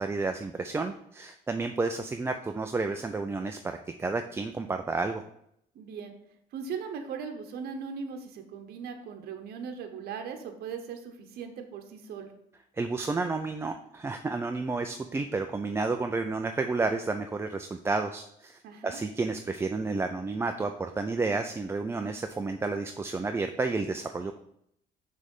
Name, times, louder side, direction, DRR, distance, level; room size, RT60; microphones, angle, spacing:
voice 1, 0.0-5.2 12.8-24.4, right 3 dB, 15° right, 6 dB, 0.3 m, -31 dB
voice 2, 5.7-6.1 6.5-12.3 18.6-19.0, right 6 dB, 65° right, 5 dB, 0.8 m, -39 dB
6.2 x 3.3 x 5.3 m, 0.74 s
cardioid pair, 110°, 17 cm